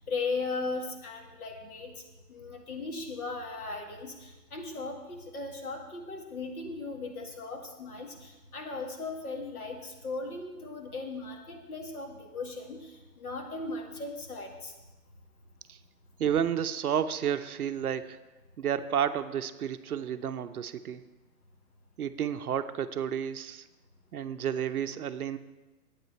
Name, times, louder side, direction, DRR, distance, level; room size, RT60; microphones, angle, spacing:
voice 1, 0.0-2.0 2.3-14.7, left 3 dB, 60° left, 2 dB, 2.1 m, -37 dB
voice 2, 16.2-18.2 18.6-21.0 22.0-23.6 24.1-25.4, right 9 dB, 60° right, 10 dB, 0.7 m, -31 dB
11.0 x 9.0 x 4.5 m, 1.1 s
hypercardioid pair, 175°, 49 cm